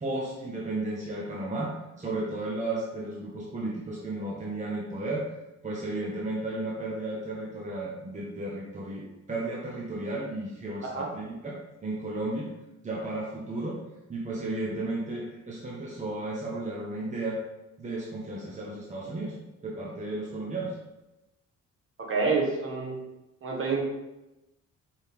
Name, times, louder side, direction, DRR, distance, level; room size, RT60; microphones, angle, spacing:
voice 1, 0.0-5.3 5.6-12.5 12.8-13.8 14.1-17.4 17.8-19.4 19.6-20.8, right 2 dB, 25° right, -4 dB, 1.1 m, -34 dB
voice 2, 22.0-23.0 23.4-23.8, right 4 dB, 45° right, -1 dB, 1.5 m, -28 dB
5.6 x 4.7 x 3.5 m, 0.96 s
cardioid pair, 130°, 30 cm